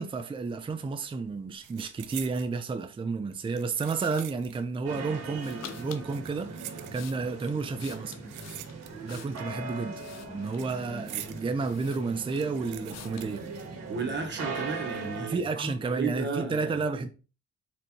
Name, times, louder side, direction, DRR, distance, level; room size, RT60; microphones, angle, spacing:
voice 1, 0.0-8.2 9.0-10.0 10.3-13.4 15.2-17.1, right 4 dB, 15° right, 0.5 m, -31 dB
sound 1, 0.6-0.9 1.1-2.5 3.3-4.7 5.0-5.1 5.9-7.3 8.0-9.2 9.5-11.5 11.9-12.0 12.1-14.3 14.5-14.6 15.3-15.7 16.2-16.4, right 12 dB, 90° right, 0.5 m, -45 dB
sound 2, 4.0-4.3 5.4-6.1 6.7-9.5 9.9-10.7 11.3-11.4 11.6-12.5 12.9-13.3, left 9 dB, 60° left, 0.6 m, -48 dB
sound 3, 4.9-15.3, right 3 dB, 60° right, 1.4 m, -40 dB
voice 2, 13.9-16.7, right 4 dB, 35° right, 1.1 m, -33 dB
4.3 x 3.1 x 2.8 m
cardioid pair, 90°, 30 cm